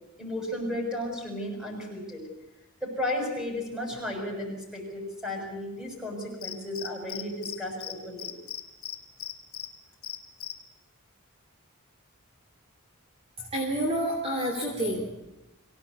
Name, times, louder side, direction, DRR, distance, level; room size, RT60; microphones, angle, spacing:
voice 1, 0.2-2.2 2.8-8.3, left 1 dB, 5° right, 0 dB, 6.9 m, -34 dB
Cricket, 6.4-7.6 7.8-7.9 8.2-9.7 10.0-10.5, left 10 dB, 75° left, 2.1 m, -36 dB
voice 2, 13.4-15.3, right 1 dB, 30° right, 0 dB, 3.1 m, -29 dB
24.0 x 17.5 x 8.4 m, 0.96 s
head